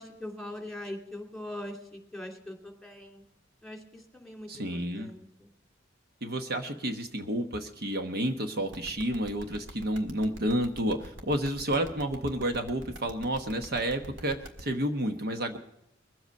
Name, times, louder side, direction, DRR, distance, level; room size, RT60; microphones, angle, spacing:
voice 1, 0.0-3.2 3.6-5.5, left 1 dB, ahead, 2 dB, 2.6 m, -42 dB
voice 2, 4.5-5.1 6.2-15.6, right 1 dB, 55° right, 6 dB, 1.1 m, -30 dB
sound 1, 8.7-14.6, equal, 80° right, 1.8 m, -43 dB
22.0 x 7.9 x 5.3 m, 0.84 s
head